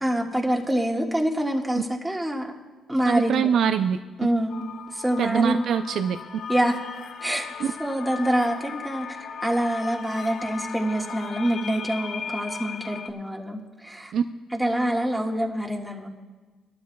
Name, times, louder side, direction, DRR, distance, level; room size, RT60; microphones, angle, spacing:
voice 1, 0.0-2.5 2.9-3.5 4.2-4.6 4.9-5.6 6.5-6.8 7.2-7.5 7.8-14.1 14.5-16.1, right 1 dB, 5° right, 0 dB, 1.6 m, -26 dB
voice 2, 3.1-4.0 5.2-6.2 7.6-7.7 14.1-14.2, right 7 dB, 70° right, 8 dB, 0.4 m, -23 dB
sound 1, 4.5-13.1, left 6 dB, 65° left, 0.9 m, -37 dB
19.5 x 12.5 x 2.3 m, 1.3 s
cardioid pair, 90°, 0 cm